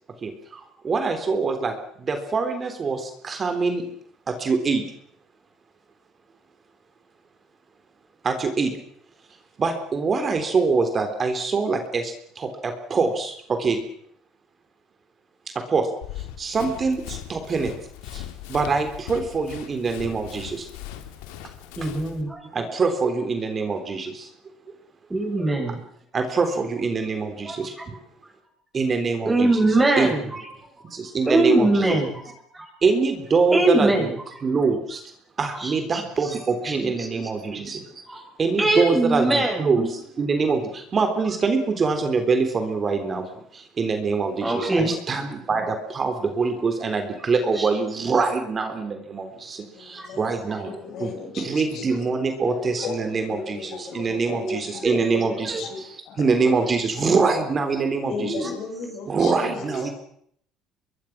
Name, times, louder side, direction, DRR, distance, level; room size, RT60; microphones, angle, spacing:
voice 1, 0.2-3.8 4.3-4.8 8.2-8.7 9.6-13.8 15.7-15.9 16.2-17.7 18.0-20.7 22.4-24.3 26.1-27.8 28.7-29.5 30.0-30.1 30.9-32.0 32.8-34.1 34.4-35.0 35.4-50.7 51.0-58.5 59.1-59.9, right 4 dB, 35° right, 7 dB, 3.6 m, -24 dB
Run, 16.0-22.2, left 12 dB, 90° left, 2.8 m, -39 dB
voice 2, 21.8-22.4 25.1-25.8 27.4-27.9 29.2-30.5 31.3-32.2 32.5-32.7 33.5-34.1 35.5-36.3 36.6-37.2 38.1-38.2 38.6-39.7 44.4-44.9 47.5-47.7 50.0-50.1 53.9-54.0 54.4-54.6 54.8-55.0 56.7-56.8 58.2-58.5 59.6-59.8, right 2 dB, 15° right, 2 dB, 8.0 m, -23 dB
voice 3, 49.7-50.2 50.6-55.8 56.1-56.4 57.0-57.1 58.1-59.9, left 5 dB, 60° left, 4 dB, 6.8 m, -35 dB
25.0 x 22.0 x 6.1 m, 0.67 s
supercardioid pair, 105°, 0 cm